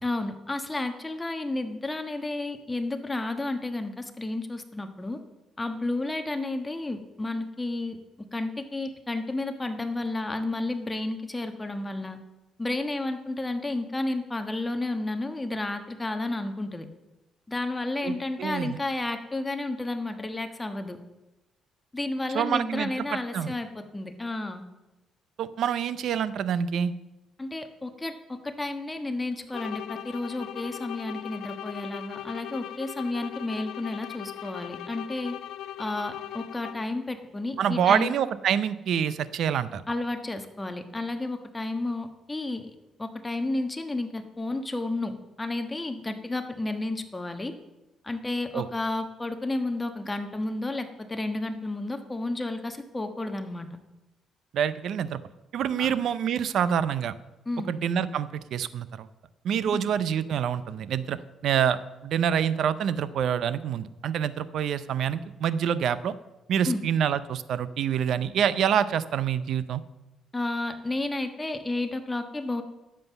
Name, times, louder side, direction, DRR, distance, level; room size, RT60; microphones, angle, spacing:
voice 1, 0.0-5.2 5.6-8.0 8.3-12.2 12.6-16.9 17.5-21.0 21.9-24.6 27.4-35.4 35.8-38.1 39.9-42.7 43.0-45.1 45.4-47.5 48.0-53.7 55.8-55.9 57.4-57.7 59.7-59.9 66.6-66.8 70.3-72.6, left 2 dB, 15° left, 6 dB, 1.4 m, -31 dB
voice 2, 18.0-18.8 22.3-22.9 23.3-23.5 25.4-26.9 37.6-39.8 48.5-48.7 54.5-55.2 55.5-57.1 57.7-59.1 59.4-66.1 66.5-69.8, right 8 dB, 70° right, 15 dB, 0.6 m, -26 dB
sound 1, 29.5-37.0, left 12 dB, 85° left, 0.5 m, -39 dB
11.0 x 7.6 x 7.0 m, 1.0 s
cardioid pair, 90°, 0 cm